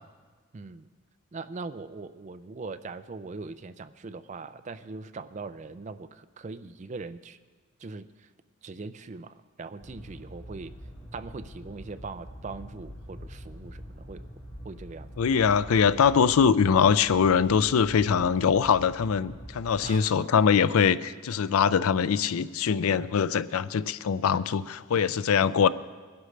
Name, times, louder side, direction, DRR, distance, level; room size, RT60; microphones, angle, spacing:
voice 1, 0.5-0.9 1.3-7.4 7.8-8.3 8.6-10.7 11.1-14.2 14.6-15.1 19.8-20.3 24.3-24.4 25.0-25.1, right 3 dB, 35° right, 12 dB, 0.4 m, -41 dB
sound 1, 9.8-19.9, equal, 30° left, 1.9 m, -44 dB
voice 2, 15.2-25.7, left 6 dB, 85° left, 15 dB, 0.4 m, -23 dB
21.0 x 11.5 x 3.3 m, 1.4 s
head